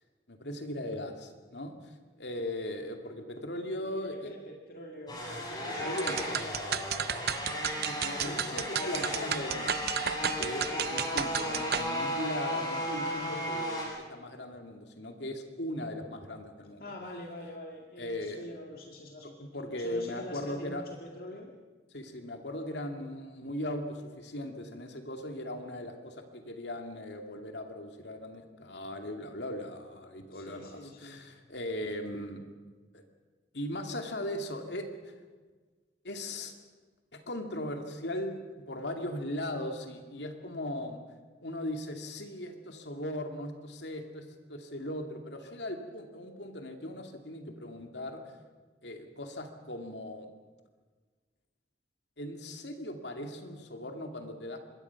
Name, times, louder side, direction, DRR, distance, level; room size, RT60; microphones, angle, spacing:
voice 1, 0.3-4.3 5.8-6.2 7.8-9.8 10.4-16.8 18.0-18.4 19.2-20.8 21.9-32.4 32.9-33.0 33.5-35.1 36.0-36.5 37.1-38.4 38.7-41.0 41.4-48.4 48.8-50.3 52.2-54.6, left 1 dB, 75° left, 4 dB, 2.5 m, -38 dB
voice 2, 3.7-6.9 10.6-10.9 16.8-21.5 30.3-31.2, left 1 dB, 55° left, 1 dB, 2.1 m, -45 dB
sound 1, 5.1-13.9, equal, 25° left, 7.5 m, -35 dB
sound 2, 6.0-11.9, right 8 dB, 60° right, 0.6 m, -33 dB
26.0 x 22.0 x 5.9 m, 1.4 s
head